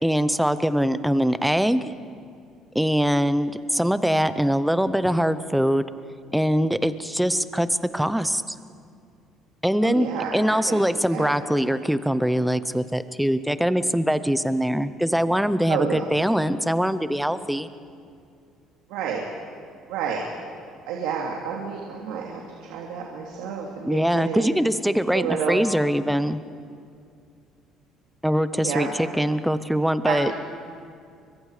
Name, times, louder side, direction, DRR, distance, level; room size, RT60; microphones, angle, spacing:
voice 1, 0.0-1.9 2.7-5.8 6.3-7.7 7.9-8.6 9.6-17.7 23.8-26.4 28.2-30.3, equal, ahead, 13 dB, 0.6 m, -23 dB
voice 2, 9.8-11.4 15.7-16.1 18.9-19.2 19.9-20.2 20.9-24.6 25.1-25.6 28.6-28.9 30.0-30.3, right 7 dB, 90° right, -1 dB, 2.9 m, -30 dB
30.0 x 24.5 x 4.9 m, 2.4 s
cardioid pair, 180°, 0 cm